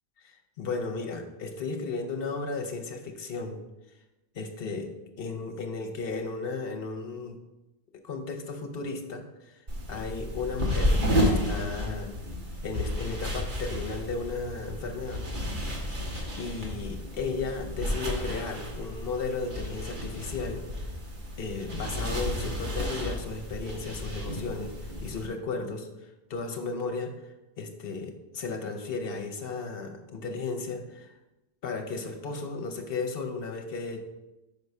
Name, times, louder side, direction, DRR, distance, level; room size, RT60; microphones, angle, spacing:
voice 1, 0.2-3.6 4.3-4.9 5.2-7.4 8.0-9.6 9.9-11.0 11.3-12.2 12.6-15.2 16.4-20.7 21.4-25.9 26.3-31.1 31.6-34.0, left 4 dB, 65° left, 5 dB, 1.0 m, -34 dB
sound 1, 9.7-25.3, equal, 55° right, 1.4 m, -32 dB
5.6 x 4.6 x 5.4 m, 0.99 s
omnidirectional pair, 1.1 m